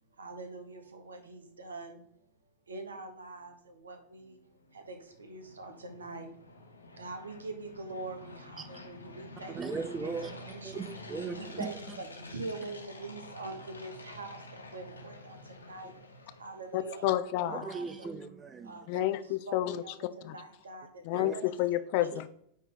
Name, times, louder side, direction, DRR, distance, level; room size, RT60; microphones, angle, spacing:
voice 1, 0.2-2.0 2.7-9.6 10.0-10.8 11.4-16.0 16.4-17.1 17.4-18.1 18.6-19.1 19.5-21.5 22.0-22.1, right 3 dB, 70° right, 1.1 m, -44 dB
sound 1, 4.6-16.9, left 2 dB, 80° left, 1.1 m, -49 dB
voice 2, 9.5-10.3 10.6-11.7 17.5-18.9 21.1-21.3, right 4 dB, 20° right, 0.6 m, -38 dB
voice 3, 16.7-17.7 18.9-19.8 21.0-22.3, left 14 dB, 45° left, 0.4 m, -30 dB
9.5 x 3.3 x 3.8 m
figure-of-eight pair, 90°, 0 cm